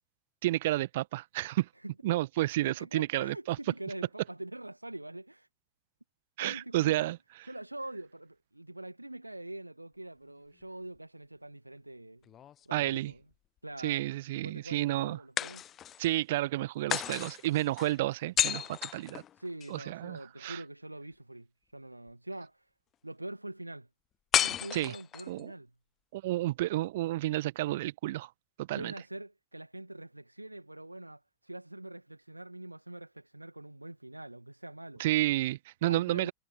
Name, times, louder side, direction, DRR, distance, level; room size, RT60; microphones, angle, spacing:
voice 1, 0.4-1.7 2.0-3.6 6.4-7.2 12.7-13.1 13.8-15.2 16.0-19.2 19.7-20.6 24.7-24.9 25.3-25.5 26.1-28.3 28.6-28.9 35.0-36.3, right 16 dB, 55° right, 1.5 m, -31 dB
voice 2, 2.6-5.5 6.4-7.1 7.5-12.4 12.6-13.2 13.6-14.1 14.4-15.6 19.4-21.5 21.7-22.6 23.0-23.9 24.4-25.7 28.7-35.0 35.9-36.3, right 1 dB, 85° right, 1.8 m, -44 dB
sound 1, 12.3-13.3 15.4-16.1 16.9-19.7 24.3-25.4, left 10 dB, 30° left, 0.4 m, -33 dB
figure-of-eight pair, 90°, 0 cm